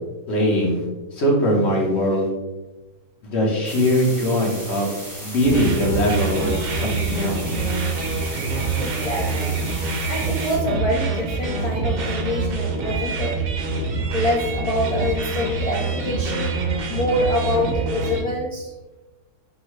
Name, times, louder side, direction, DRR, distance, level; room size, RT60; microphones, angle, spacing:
voice 1, 0.3-0.9 1.1-2.3 3.2-4.9 5.2-6.5 6.8-7.4, equal, 45° left, -2 dB, 1.3 m, -21 dB
sound 1, 3.6-10.6, right 1 dB, 15° right, 1.2 m, -36 dB
sound 2, 5.4-18.2, right 3 dB, 55° right, 0.6 m, -25 dB
voice 2, 8.8-9.5 10.0-13.3 14.1-16.5 16.9-18.7, left 1 dB, 85° left, -3 dB, 0.3 m, -25 dB
5.5 x 2.7 x 3.1 m, 1.1 s
omnidirectional pair, 1.6 m